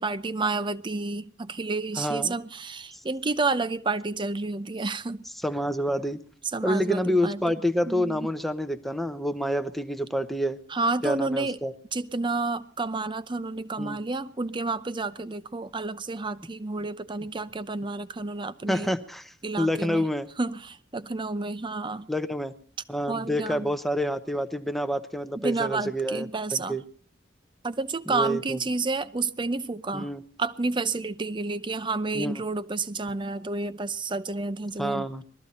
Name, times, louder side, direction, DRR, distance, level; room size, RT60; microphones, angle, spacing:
voice 1, 0.0-5.3 6.5-7.4 7.9-8.3 10.7-11.6 11.9-18.9 19.4-20.1 20.4-22.1 23.1-23.7 25.4-26.8 27.6-30.1 30.4-35.1, right 3 dB, 25° right, 0.6 m, -30 dB
voice 2, 2.0-2.3 5.4-6.2 6.6-10.6 11.0-11.7 13.8-14.0 18.7-20.3 22.1-22.5 22.9-26.8 28.1-28.6 29.9-30.2 32.1-32.3 34.8-35.2, equal, ahead, 0.9 m, -28 dB
20.5 x 13.5 x 4.2 m
head